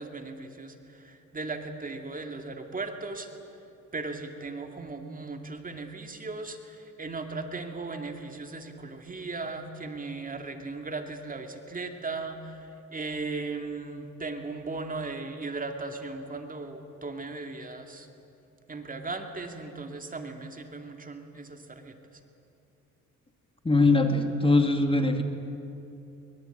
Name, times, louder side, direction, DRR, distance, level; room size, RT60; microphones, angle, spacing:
voice 1, 0.0-3.3 3.9-18.1 18.7-22.0, right 3 dB, 30° right, 5 dB, 2.4 m, -37 dB
voice 2, 23.6-25.2, left 2 dB, 15° left, 5 dB, 2.4 m, -22 dB
24.0 x 23.0 x 9.2 m, 2.9 s
cardioid pair, 95°, 30 cm